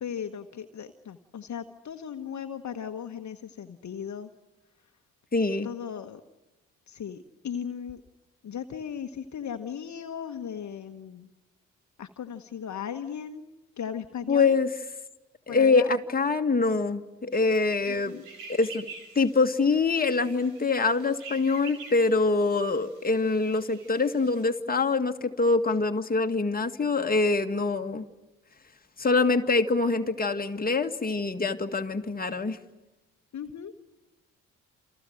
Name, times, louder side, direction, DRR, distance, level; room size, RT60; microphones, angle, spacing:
voice 1, 0.0-4.3 5.6-6.2 6.9-8.0 8.4-11.3 12.0-13.4 13.8-14.6 15.5-15.9 17.9-18.3 33.3-33.7, left 8 dB, 45° left, 7 dB, 1.3 m, -37 dB
voice 2, 5.3-5.7 14.3-14.7 15.5-18.2 18.5-18.9 19.2-28.0 29.0-32.6, left 3 dB, 20° left, 5 dB, 1.9 m, -24 dB
sound 1, 17.3-24.4, right 5 dB, 80° right, 4.4 m, -48 dB
29.0 x 28.5 x 6.4 m, 1.0 s
hypercardioid pair, 45°, 39 cm